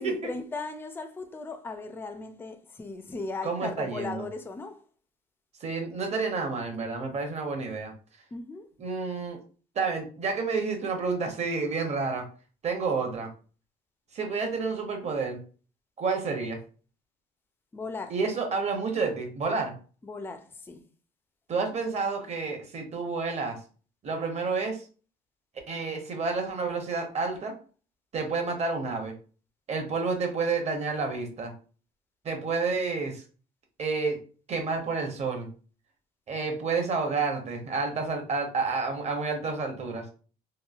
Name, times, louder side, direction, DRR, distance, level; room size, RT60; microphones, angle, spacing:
voice 1, 0.0-4.8 8.3-8.7 17.7-18.2 20.0-20.8, left 3 dB, 15° left, 0.3 m, -37 dB
voice 2, 3.4-4.2 5.6-7.9 8.8-9.4 9.7-12.3 12.6-13.3 14.1-15.4 16.0-16.6 18.1-19.7 21.5-23.6 24.0-24.8 25.7-27.5 28.1-29.1 29.7-31.5 32.2-33.2 33.8-34.2 34.5-35.5 36.3-40.0, right 4 dB, 40° right, 0.8 m, -29 dB
3.0 x 2.2 x 2.4 m
cardioid pair, 110°, 17 cm